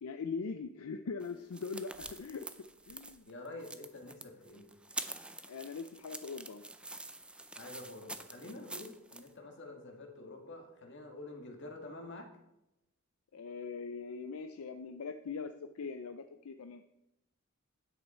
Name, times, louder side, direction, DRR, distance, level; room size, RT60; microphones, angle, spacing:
voice 1, 0.0-3.2 5.5-6.6 13.3-16.8, left 5 dB, 80° left, 9 dB, 0.5 m, -41 dB
sound 1, 1.2-9.3, right 2 dB, 5° right, 0.4 m, -46 dB
voice 2, 3.2-4.7 7.5-12.3, left 2 dB, 55° left, 2 dB, 1.9 m, -48 dB
9.8 x 8.0 x 4.3 m, 0.89 s
head